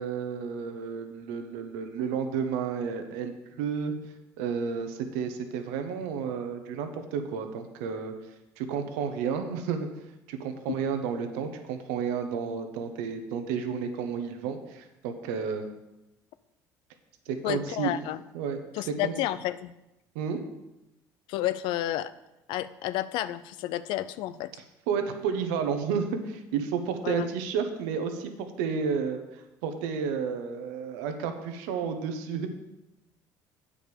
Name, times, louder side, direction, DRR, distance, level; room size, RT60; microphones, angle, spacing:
voice 1, 0.0-3.9 4.4-8.1 8.6-9.9 10.3-15.7 17.3-17.9 18.3-19.1 20.1-20.4 24.9-32.5, right 6 dB, 90° right, 6 dB, 1.0 m, -31 dB
voice 2, 17.4-18.2 18.7-19.7 21.3-22.1 22.5-24.5 27.0-27.3, left 13 dB, 75° left, 14 dB, 0.5 m, -31 dB
8.6 x 5.0 x 6.9 m, 0.96 s
supercardioid pair, 90°, 8 cm